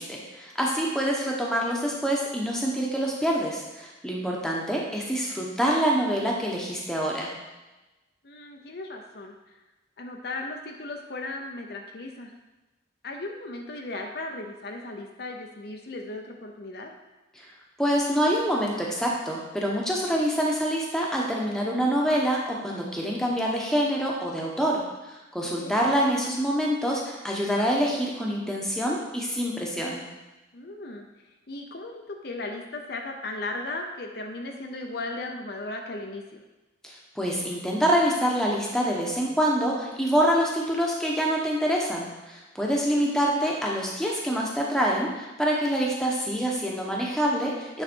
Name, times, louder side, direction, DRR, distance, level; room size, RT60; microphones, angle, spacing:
voice 1, 0.0-7.3 17.3-17.4 17.8-24.8 25.1-30.0 36.8-47.8, equal, 5° left, -3 dB, 1.0 m, -26 dB
voice 2, 8.2-9.6 10.0-12.3 13.0-16.9 25.6-25.8 30.5-31.1 31.5-36.4 42.7-43.1, left 2 dB, 55° left, 2 dB, 0.7 m, -36 dB
8.9 x 4.0 x 4.5 m, 1.1 s
head